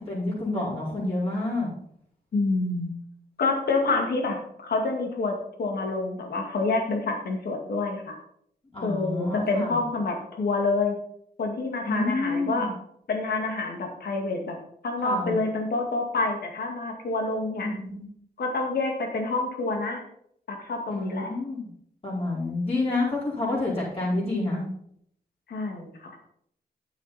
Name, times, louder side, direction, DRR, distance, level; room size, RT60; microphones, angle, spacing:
voice 1, 0.0-1.7 8.7-9.8 11.8-12.7 15.0-15.3 17.6-18.1 20.9-21.7 22.0-24.6, left 2 dB, 35° left, -7 dB, 4.6 m, -28 dB
voice 2, 2.3-2.9 3.4-8.2 8.8-11.0 11.4-12.7 13.1-14.6 14.8-17.7 18.4-20.0 20.5-21.3 25.5-26.2, left 3 dB, 80° left, 3 dB, 2.2 m, -27 dB
9.4 x 7.3 x 4.3 m, 0.68 s
wide cardioid pair, 95°, 16 cm